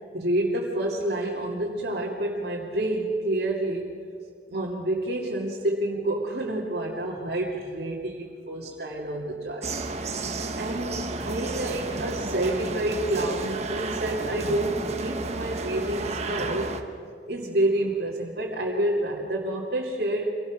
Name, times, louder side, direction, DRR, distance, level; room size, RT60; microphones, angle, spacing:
voice 1, 0.1-3.9 4.5-9.9 10.5-16.8 17.3-20.3, right 1 dB, 65° right, -4 dB, 2.5 m, -28 dB
sound 1, 9.6-16.8, right 3 dB, 40° right, 1.2 m, -32 dB
26.0 x 18.0 x 6.3 m, 2.3 s
head